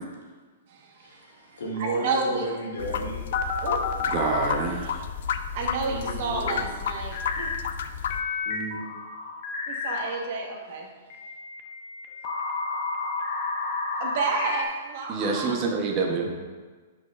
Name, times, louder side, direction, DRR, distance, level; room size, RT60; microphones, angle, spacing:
voice 1, 1.0-3.2 5.9-6.7 8.4-8.9 16.2-16.3, right 1 dB, 85° left, -4 dB, 2.2 m, -35 dB
voice 2, 1.8-2.5 3.6-3.8 5.5-7.5 9.7-10.9 14.0-15.5, right 4 dB, 50° right, 0 dB, 1.1 m, -30 dB
sound 1, 2.8-8.2, left 7 dB, 65° left, 0.4 m, -32 dB
sound 2, 3.3-4.5 7.1-7.6 8.1-10.2 11.1-14.6, left 4 dB, 40° left, 0.8 m, -31 dB
voice 3, 4.1-5.0 15.1-16.3, right 4 dB, 30° right, 0 dB, 0.8 m, -26 dB
10.5 x 5.3 x 2.4 m, 1.4 s
hypercardioid pair, 150°, 0 cm